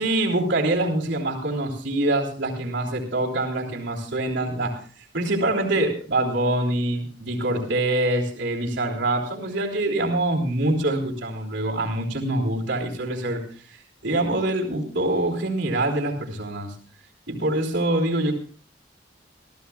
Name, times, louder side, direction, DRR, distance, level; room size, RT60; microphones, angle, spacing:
voice 1, 0.0-4.8 5.1-13.4 13.7-16.7 17.3-18.3, right 1 dB, 75° right, -7 dB, 3.5 m, -25 dB
27.0 x 14.5 x 2.4 m, 0.41 s
head